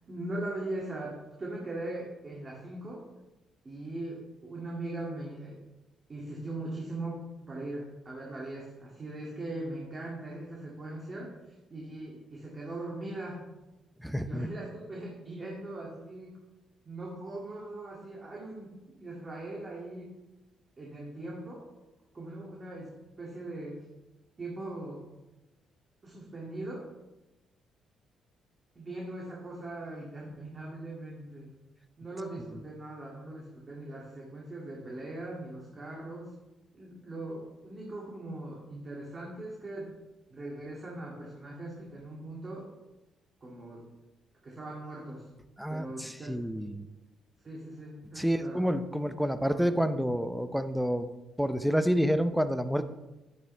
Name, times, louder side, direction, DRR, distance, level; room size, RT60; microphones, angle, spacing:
voice 1, 0.0-3.1 3.6-5.6 6.1-13.4 14.2-16.3 16.9-20.1 20.8-21.7 22.1-22.9 23.2-23.8 24.4-25.0 26.0-26.9 28.8-31.5 32.0-36.3 36.7-39.9 40.3-42.7 43.4-43.8 44.4-45.3 45.7-46.7 47.4-48.7 49.1-49.8, right 2 dB, 35° right, -3 dB, 2.4 m, -40 dB
voice 2, 14.0-14.5 45.6-46.9 48.2-51.1 51.4-52.8, equal, ahead, 11 dB, 0.6 m, -29 dB
10.5 x 9.5 x 3.4 m, 1.0 s
cardioid pair, 90°, 0 cm